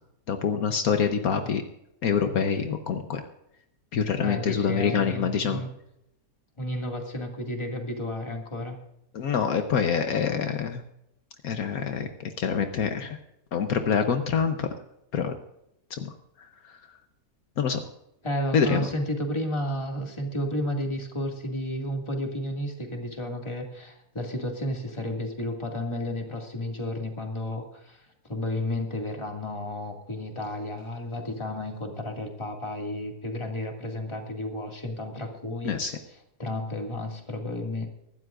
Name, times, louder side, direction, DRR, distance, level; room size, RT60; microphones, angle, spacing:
voice 1, 0.3-1.6 2.0-3.2 3.9-5.6 9.1-10.8 11.4-13.2 13.5-14.7 15.1-15.3 15.9-16.1 16.4-16.7 17.6-17.8 18.5-18.9 35.6-36.0, left 6 dB, 70° left, 6 dB, 1.3 m, -26 dB
voice 2, 4.2-5.7 6.6-8.8 18.2-35.7 36.4-37.9, left 1 dB, 20° left, 2 dB, 2.1 m, -32 dB
24.0 x 12.5 x 2.5 m, 0.84 s
omnidirectional pair, 1.6 m